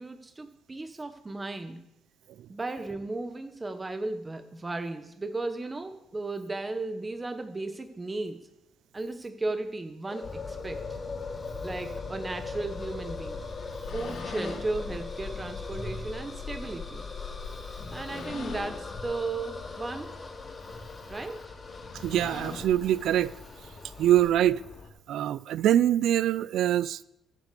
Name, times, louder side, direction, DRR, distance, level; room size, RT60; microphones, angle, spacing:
voice 1, 0.0-1.8 2.5-8.5 8.9-11.0 11.6-13.4 13.9-17.1 17.9-20.2 21.1-21.5, right 2 dB, 25° right, 1.0 m, -35 dB
sound 1, 10.1-24.3, left 4 dB, 35° left, 3.3 m, -41 dB
sound 2, 10.2-24.9, left 4 dB, 65° left, 2.6 m, -41 dB
voice 2, 22.0-23.3 24.0-24.6 25.1-27.0, right 11 dB, 80° right, 0.4 m, -24 dB
11.5 x 8.3 x 6.8 m
cardioid pair, 90°, 0 cm